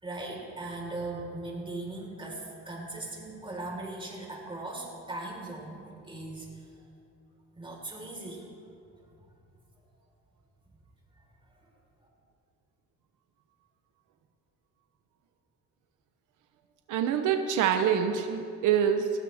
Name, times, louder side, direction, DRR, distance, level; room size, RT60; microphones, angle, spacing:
voice 1, 0.0-6.8 7.5-8.5 9.1-9.3 11.1-11.2 11.5-11.7, right 2 dB, 15° right, -2 dB, 4.3 m, -39 dB
voice 2, 16.9-19.1, right 8 dB, 85° right, 6 dB, 0.9 m, -25 dB
19.0 x 15.5 x 3.5 m, 2.5 s
cardioid pair, 90°, 30 cm